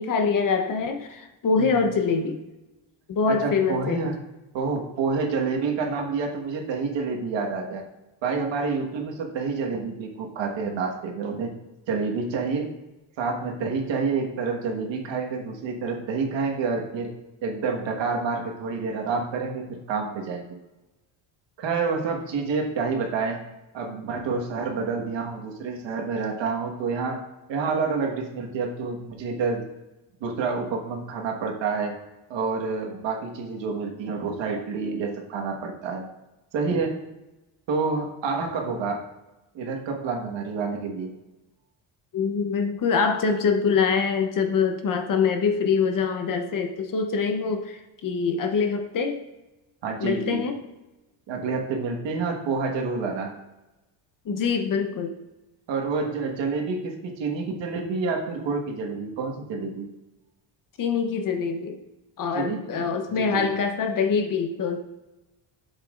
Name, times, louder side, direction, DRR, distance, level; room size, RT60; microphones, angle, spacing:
voice 1, 0.0-2.4 3.1-4.0 42.1-49.2 50.0-50.6 54.2-55.2 60.8-61.8 62.2-64.8, left 5 dB, 45° left, 6 dB, 0.8 m, -24 dB
voice 2, 3.4-4.2 4.5-7.8 8.2-11.5 11.9-12.7 13.2-17.1 17.4-20.5 21.6-23.4 23.7-27.2 27.5-29.6 30.2-31.9 32.3-36.0 36.5-37.0 37.7-39.0 39.5-41.1 49.8-50.4 51.3-53.3 55.7-59.9 62.3-62.9 63.2-63.5, right 4 dB, 65° right, 2 dB, 1.5 m, -28 dB
11.0 x 7.4 x 2.5 m, 1.0 s
cardioid pair, 145°, 47 cm